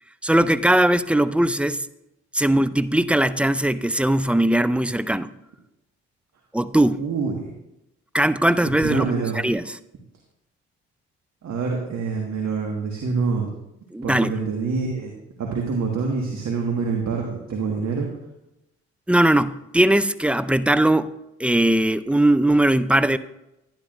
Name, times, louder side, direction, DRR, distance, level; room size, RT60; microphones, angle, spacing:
voice 1, 0.2-1.9 2.3-5.3 6.5-7.0 8.1-9.6 13.9-14.3 19.1-21.1 21.4-23.2, right 1 dB, 5° right, 15 dB, 0.4 m, -19 dB
voice 2, 7.0-7.5 8.8-9.4 11.4-13.5 14.0-15.1 15.4-18.1, right 4 dB, 60° right, 0 dB, 1.7 m, -26 dB
11.0 x 10.5 x 2.5 m, 0.88 s
supercardioid pair, 55°, 32 cm